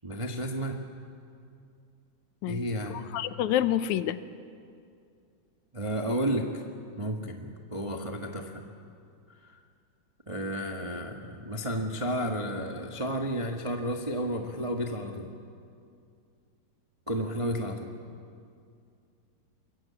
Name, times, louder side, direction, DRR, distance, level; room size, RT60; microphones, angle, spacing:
voice 1, 0.0-0.8 2.5-3.1 5.7-6.6 7.0-8.6 10.3-15.3 17.1-17.9, equal, 30° right, 3 dB, 0.6 m, -32 dB
voice 2, 2.9-4.2, left 11 dB, 90° left, 13 dB, 2.2 m, -28 dB
23.5 x 22.0 x 8.6 m, 2.4 s
omnidirectional pair, 3.3 m